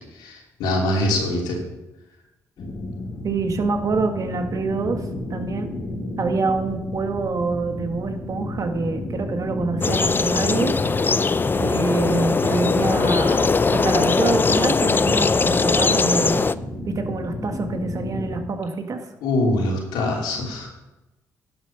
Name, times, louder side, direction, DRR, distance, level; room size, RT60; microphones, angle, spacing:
voice 1, 0.1-1.6 19.2-20.7, left 1 dB, 85° left, -1 dB, 3.0 m, -23 dB
sound 1, 2.6-18.4, left 2 dB, 60° left, 2.5 m, -32 dB
voice 2, 3.2-5.0 5.3-5.7 6.2-10.7 11.6-13.5 13.7-16.4 16.9-19.0, right 4 dB, 50° right, 5 dB, 1.7 m, -26 dB
sound 2, 9.8-16.5, left 4 dB, 30° left, 0.5 m, -20 dB
11.5 x 7.4 x 5.6 m, 0.99 s
supercardioid pair, 60°, 7 cm